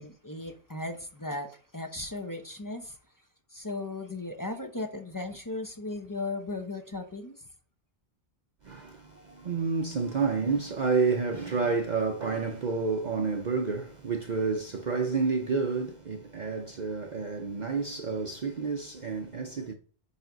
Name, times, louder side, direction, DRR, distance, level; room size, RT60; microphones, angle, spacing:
voice 1, 0.0-3.0 3.5-7.4, left 2 dB, 20° left, 0.6 m, -36 dB
voice 2, 8.6-19.7, right 4 dB, 45° right, 0.7 m, -29 dB
9.2 x 3.4 x 3.8 m
omnidirectional pair, 1.2 m